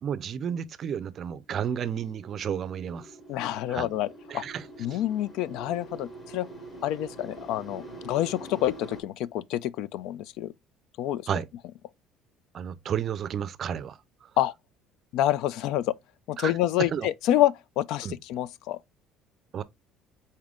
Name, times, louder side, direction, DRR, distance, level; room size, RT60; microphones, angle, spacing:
voice 1, 0.0-3.1 3.7-3.9 4.3-4.6 4.9-5.0 11.3-11.5 12.5-14.0 16.4-16.5 16.9-17.1 18.0-18.2 19.5-19.6, right 8 dB, 40° right, 0.4 m, -32 dB
sound 1, 1.4-9.0, right 2 dB, 25° left, 1.9 m, -45 dB
voice 2, 3.3-4.4 4.8-6.5 6.8-10.5 11.0-11.3 14.4-14.5 15.1-15.9 16.3-18.8, left 13 dB, 70° left, 0.3 m, -27 dB
4.3 x 3.6 x 3.4 m
cardioid pair, 150°, 0 cm